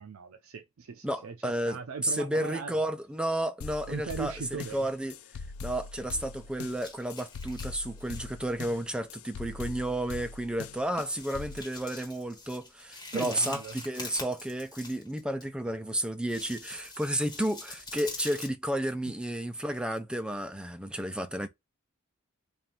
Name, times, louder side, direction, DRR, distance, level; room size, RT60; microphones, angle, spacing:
voice 1, 0.0-2.7 3.9-4.8 13.1-13.8, right 5 dB, 70° right, 0.5 m, -38 dB
voice 2, 1.0-1.8 2.0-5.2 5.6-21.5, right 1 dB, 5° right, 0.4 m, -32 dB
sound 1, 3.6-11.6, left 4 dB, 85° left, 0.4 m, -42 dB
sound 2, 5.7-6.4 6.7-8.3 8.6-8.8 9.4-9.5 9.7-9.9 10.3-10.4 11.0-15.4 16.0-18.5, left 3 dB, 20° left, 1.4 m, -44 dB
3.3 x 2.5 x 4.2 m
head